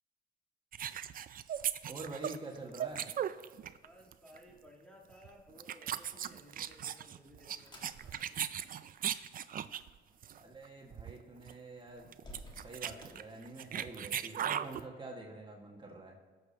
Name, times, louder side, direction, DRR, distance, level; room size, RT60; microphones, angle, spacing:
sound 1, 0.7-4.4 5.1-5.3 5.6-9.9 10.2-10.4 10.6-10.7 10.9-11.2 11.5-11.6 12.0-14.8, right 10 dB, 45° right, 0.4 m, -38 dB
voice 1, 1.9-3.1 10.4-12.1 12.6-16.2, right 2 dB, 25° right, 0 dB, 1.6 m, -46 dB
voice 2, 3.8-8.5, equal, 5° left, -1 dB, 1.7 m, -58 dB
sound 2, 7.0-14.0, left 1 dB, 20° left, 1.8 m, -59 dB
19.0 x 6.7 x 2.8 m, 1.4 s
cardioid pair, 90°, 20 cm